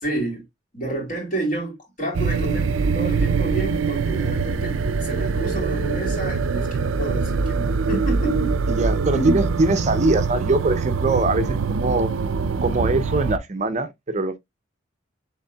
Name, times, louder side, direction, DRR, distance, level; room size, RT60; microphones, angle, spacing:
voice 1, 0.0-0.4 0.7-8.6 9.1-9.5, right 2 dB, 40° left, 3.0 m, -29 dB
sound 1, 2.1-13.4, right 4 dB, 85° right, 0.5 m, -23 dB
voice 2, 8.7-12.1 12.6-14.4, right 2 dB, 35° right, 0.6 m, -22 dB
6.5 x 3.5 x 2.2 m
head